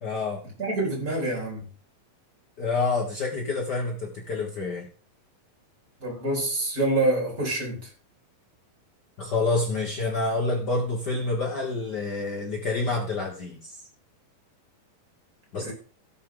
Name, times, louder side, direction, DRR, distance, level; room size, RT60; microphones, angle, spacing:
voice 1, 0.0-0.4 2.6-4.9 9.2-13.8 15.5-15.7, left 3 dB, 80° left, 0.9 m, -28 dB
voice 2, 0.6-1.6 6.0-7.9 15.6-15.7, right 2 dB, 25° right, 4.3 m, -26 dB
17.0 x 6.6 x 3.8 m
omnidirectional pair, 4.2 m